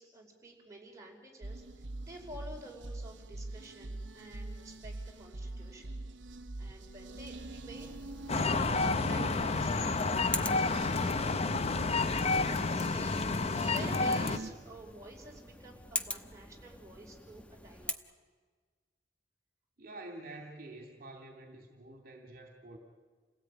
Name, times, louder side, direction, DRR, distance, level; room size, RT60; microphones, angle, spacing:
voice 1, 0.0-1.6 2.0-6.0 6.6-7.9 8.3-11.4 11.6-18.0, right 1 dB, 15° right, -1 dB, 5.2 m, -50 dB
sound 1, 1.4-14.5, right 2 dB, 75° right, 1.1 m, -44 dB
sound 2, 7.8-17.9, left 2 dB, 5° left, 1.0 m, -44 dB
sound 3, 8.3-14.4, left 3 dB, 35° left, 0.7 m, -30 dB
voice 2, 19.8-22.8, right 2 dB, 50° right, 3 dB, 2.6 m, -48 dB
28.5 x 17.5 x 9.2 m, 1.5 s
head